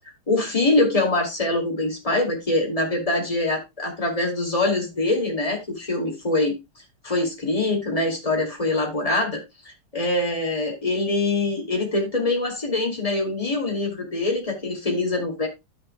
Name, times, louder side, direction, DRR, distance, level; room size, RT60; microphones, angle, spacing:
voice 1, 0.3-6.6 7.0-9.4 9.6-15.5, left 2 dB, 15° left, 2.3 m, -24 dB
12.0 x 7.0 x 2.2 m
omnidirectional pair, 2.4 m